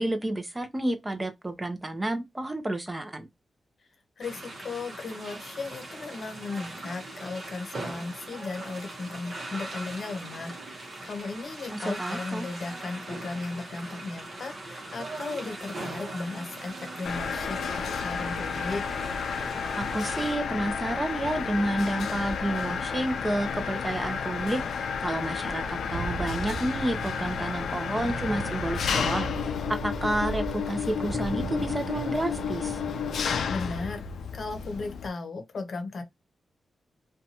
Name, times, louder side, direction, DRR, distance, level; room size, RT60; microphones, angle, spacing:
voice 1, 0.0-3.3 11.7-12.5 19.8-29.3 29.7-32.8, right 1 dB, 15° right, 0.6 m, -30 dB
voice 2, 4.2-18.9 33.5-34.0 34.3-36.0, left 3 dB, 55° left, 0.8 m, -36 dB
sound 1, 4.2-20.3, right 2 dB, 50° right, 0.9 m, -40 dB
Mechanisms, 17.1-35.1, left 6 dB, 85° left, 0.3 m, -31 dB
sound 2, 25.9-33.2, right 4 dB, 70° right, 0.4 m, -38 dB
2.7 x 2.3 x 2.7 m
wide cardioid pair, 115°, 0 cm